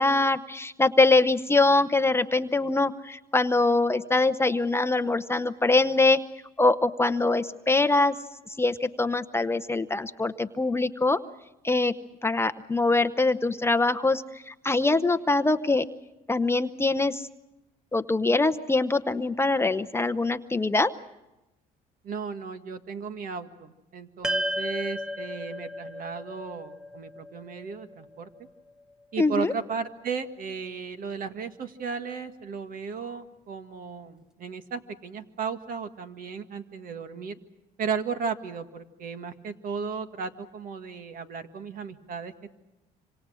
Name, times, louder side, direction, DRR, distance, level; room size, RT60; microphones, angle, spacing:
voice 1, 0.0-6.2 6.6-8.2 8.6-11.2 11.6-11.9 12.2-15.8 16.3-17.2 17.9-20.9 29.2-29.5, left 3 dB, 15° left, 10 dB, 0.8 m, -23 dB
voice 2, 22.0-28.3 29.1-37.4 37.8-42.5, right 5 dB, 55° right, 8 dB, 1.8 m, -35 dB
sound 1, 24.2-28.7, equal, 5° right, 1.1 m, -34 dB
26.0 x 26.0 x 6.3 m, 0.97 s
cardioid pair, 110°, 17 cm